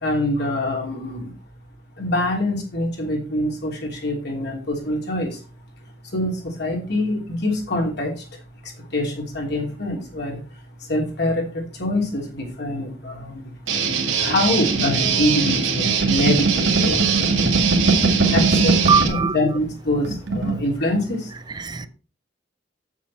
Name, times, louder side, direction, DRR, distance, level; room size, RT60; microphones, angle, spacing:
voice 1, 0.0-1.3 2.0-5.4 6.1-8.1 8.9-10.4 10.9-13.5 14.2-17.6 18.1-18.8 19.1-21.3, left 1 dB, 60° left, 3.1 m, -25 dB
Guitar, 13.7-19.1, right 6 dB, 85° right, 2.3 m, -22 dB
sound 1, 14.7-19.3 19.6-19.7 20.0-20.6, right 3 dB, 65° right, 1.7 m, -21 dB
voice 2, 18.9-19.4 21.5-21.9, right 5 dB, 20° right, 0.4 m, -20 dB
8.0 x 7.2 x 4.2 m
head